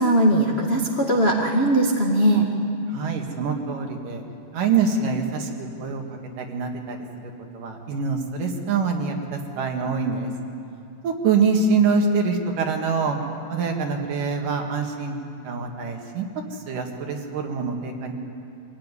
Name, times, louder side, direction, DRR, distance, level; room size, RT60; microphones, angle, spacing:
voice 1, 0.0-2.5, right 1 dB, 45° left, -1 dB, 0.7 m, -19 dB
voice 2, 2.9-4.2 4.5-7.0 7.5-10.3 11.0-13.2 13.5-15.2 15.4-16.3 16.5-18.1, right 5 dB, 60° right, 3 dB, 3.3 m, -25 dB
25.5 x 16.5 x 9.8 m, 2.7 s
omnidirectional pair, 4.4 m